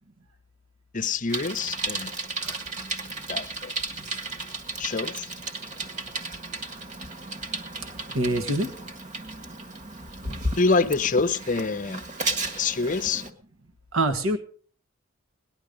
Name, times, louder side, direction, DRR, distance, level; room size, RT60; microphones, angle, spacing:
voice 1, 0.9-2.1 3.3-3.7 4.8-5.2 10.6-12.0 12.6-13.2, left 4 dB, 40° left, 0.7 m, -26 dB
Bicycle, 1.3-13.3, right 2 dB, 35° right, 1.5 m, -34 dB
voice 2, 8.1-8.7 13.9-14.4, right 1 dB, 75° right, 1.4 m, -25 dB
18.5 x 11.0 x 5.2 m
head